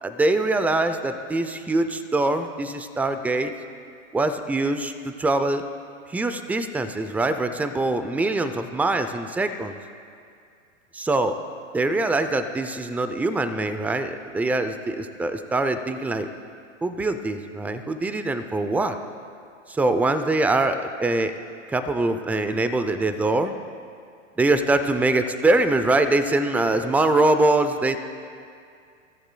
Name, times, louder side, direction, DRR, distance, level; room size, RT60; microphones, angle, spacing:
voice 1, 0.0-3.5 4.1-5.6 6.1-9.8 10.9-11.4 11.7-16.3 16.8-19.0 19.7-21.3 21.7-23.5 24.4-28.0, right 2 dB, 5° right, 9 dB, 0.5 m, -23 dB
25.0 x 14.0 x 2.3 m, 2.3 s
hypercardioid pair, 115°, 38 cm